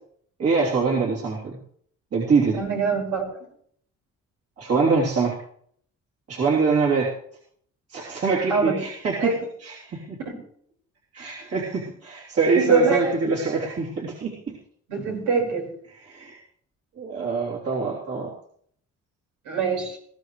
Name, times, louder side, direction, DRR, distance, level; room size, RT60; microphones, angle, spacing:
voice 1, 0.4-1.6 2.1-2.6 4.6-5.4 6.3-7.1 7.9-10.2 11.1-14.6 16.0-16.4 17.0-18.3, right 4 dB, 50° right, -5 dB, 3.5 m, -24 dB
voice 2, 2.5-3.3 8.5-8.8 9.2-9.4 10.2-10.4 12.5-13.1 14.9-15.7 19.5-20.0, right 5 dB, 90° right, 0 dB, 5.5 m, -24 dB
20.5 x 15.0 x 3.3 m, 0.63 s
cardioid pair, 90°, 30 cm